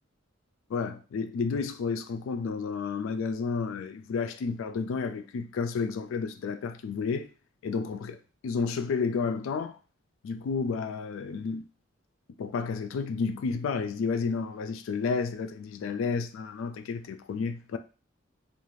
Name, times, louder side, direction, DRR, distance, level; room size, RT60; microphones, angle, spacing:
voice 1, 0.7-7.3 7.6-9.8 10.2-11.6 12.4-17.8, left 5 dB, 85° left, 0.3 m, -31 dB
2.5 x 2.4 x 3.1 m
head